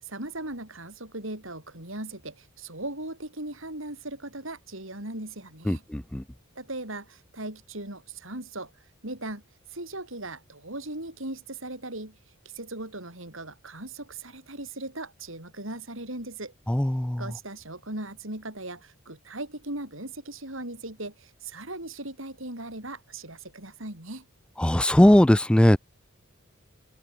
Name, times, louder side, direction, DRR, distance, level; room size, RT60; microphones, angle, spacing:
voice 1, 0.0-5.8 6.6-8.7 9.0-9.4 9.7-12.2 12.5-16.5 17.2-24.2, right 2 dB, 65° right, 7.4 m, -38 dB
voice 2, 5.7-6.2 16.7-17.2 24.6-25.8, left 1 dB, 5° left, 0.3 m, -19 dB
head